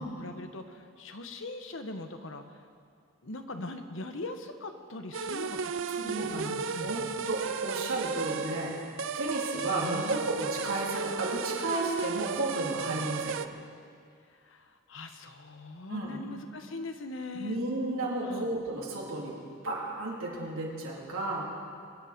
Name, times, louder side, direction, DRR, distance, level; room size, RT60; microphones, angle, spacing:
voice 1, 0.0-2.6 3.2-5.6 5.9-7.1 9.6-10.3 14.4-17.6 18.2-18.5, left 2 dB, 65° left, 7 dB, 1.1 m, -41 dB
sound 1, 5.1-13.5, right 5 dB, 65° right, 0.5 m, -34 dB
voice 2, 6.0-8.8 9.1-13.4 15.9-16.2 17.3-19.4 19.6-21.5, right 2 dB, 80° right, -4 dB, 3.5 m, -33 dB
23.0 x 10.5 x 5.2 m, 2.3 s
head